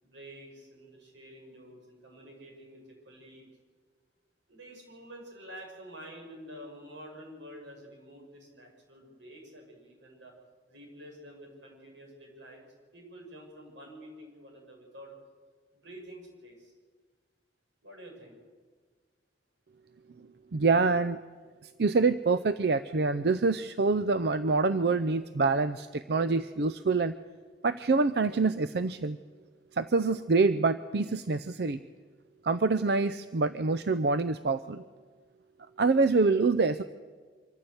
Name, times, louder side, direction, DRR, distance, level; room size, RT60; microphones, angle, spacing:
voice 1, 0.0-3.5 4.5-10.3 10.7-12.6 12.9-15.1 15.7-16.7 17.8-18.4, equal, 90° right, 1 dB, 6.2 m, -49 dB
voice 2, 20.5-21.2 21.8-27.1 27.6-29.2 29.7-31.8 32.4-34.8 35.8-36.8, right 3 dB, 60° right, 13 dB, 0.5 m, -26 dB
24.5 x 14.0 x 8.0 m, 1.5 s
head